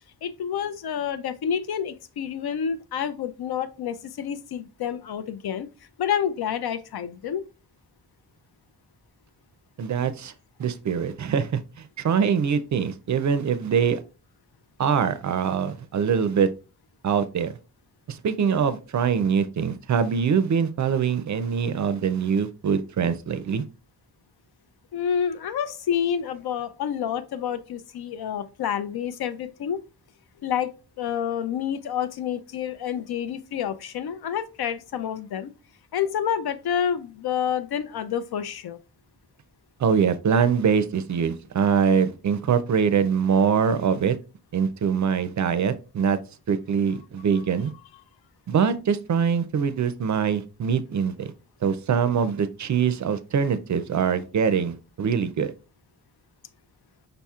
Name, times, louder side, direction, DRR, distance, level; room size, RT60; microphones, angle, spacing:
voice 1, 0.2-5.7 6.0-7.4 24.9-29.8 30.4-30.7 31.0-35.5 35.9-38.8, left 8 dB, 70° left, 0.6 m, -28 dB
voice 2, 9.8-10.3 10.6-11.6 12.0-14.0 14.8-16.5 17.0-17.5 18.1-23.6 39.8-44.2 44.5-46.2 46.5-47.7 48.5-51.3 51.6-55.5, right 7 dB, 50° right, 0.4 m, -23 dB
5.3 x 4.2 x 2.3 m
wide cardioid pair, 125°, 39 cm